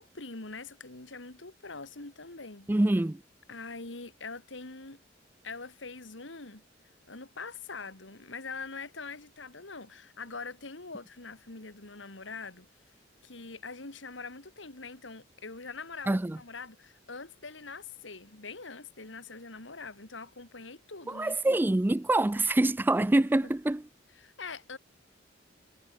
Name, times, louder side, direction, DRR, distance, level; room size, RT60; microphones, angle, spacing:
voice 1, 0.0-2.7 3.5-5.0 5.4-6.6 7.1-12.7 13.2-21.6 24.2-24.8, left 4 dB, 80° left, 2.5 m, -43 dB
voice 2, 2.7-3.2 16.1-16.4 21.1-23.9, right 1 dB, 10° right, 0.4 m, -25 dB
head